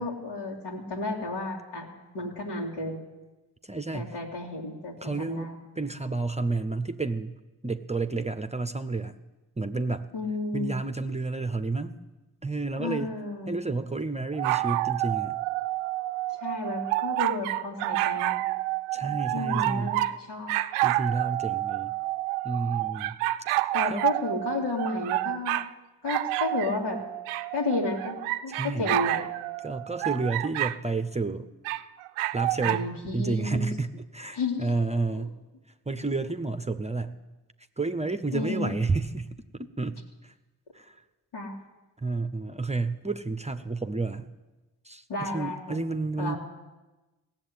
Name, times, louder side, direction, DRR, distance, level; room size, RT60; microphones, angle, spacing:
voice 1, 0.0-1.9 2.1-3.0 3.9-5.5 10.1-10.7 12.8-13.6 16.4-18.4 19.0-20.5 23.7-25.6 26.0-27.0 27.5-29.2 32.6-33.7 34.3-34.7 35.1-35.2 38.3-38.7 41.3-41.5 45.1-45.9 46.2-46.4, left 3 dB, 75° left, -3 dB, 2.6 m, -32 dB
voice 2, 3.6-4.1 5.0-5.5 5.8-7.4 7.6-9.1 9.6-10.1 10.5-12.0 12.4-13.2 13.5-15.4 18.9-20.0 20.8-21.9 22.4-23.2 23.5-24.1 28.5-28.9 29.6-31.5 32.3-35.4 35.9-37.2 37.8-40.3 40.7-41.0 42.0-44.3 44.8-46.4, right 3 dB, 15° right, 10 dB, 0.8 m, -31 dB
sound 1, 14.3-20.2 20.5-25.7 26.1-30.8 31.7-32.8, right 17 dB, 85° right, 0.6 m, -29 dB
16.5 x 7.5 x 9.6 m, 1.1 s
hypercardioid pair, 45°, 49 cm